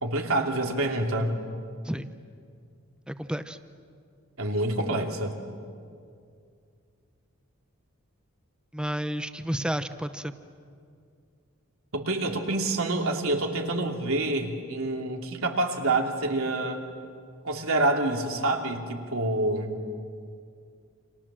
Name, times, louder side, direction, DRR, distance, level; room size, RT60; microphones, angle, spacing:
voice 1, 0.0-1.4 4.4-5.3 11.9-16.8 17.4-19.7, right 2 dB, 90° right, 3 dB, 2.9 m, -27 dB
voice 2, 3.1-3.6 8.7-10.3, equal, 5° right, 11 dB, 0.8 m, -31 dB
29.5 x 26.5 x 7.5 m, 2.3 s
head